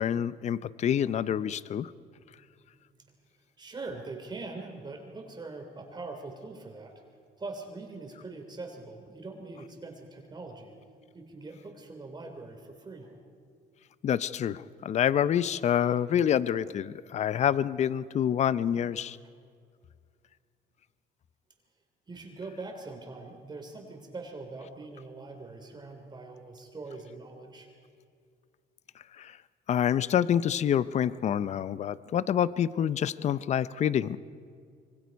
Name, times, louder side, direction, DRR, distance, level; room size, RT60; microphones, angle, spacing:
voice 1, 0.0-1.9 14.0-19.2 29.2-29.4 29.7-34.2, left 9 dB, 40° left, 17 dB, 0.6 m, -27 dB
voice 2, 2.1-3.1 3.6-6.9 7.4-10.8 11.1-13.2 22.1-27.7, right 3 dB, 25° right, 3 dB, 3.1 m, -43 dB
26.0 x 24.0 x 5.3 m, 2.2 s
cardioid pair, 110°, 17 cm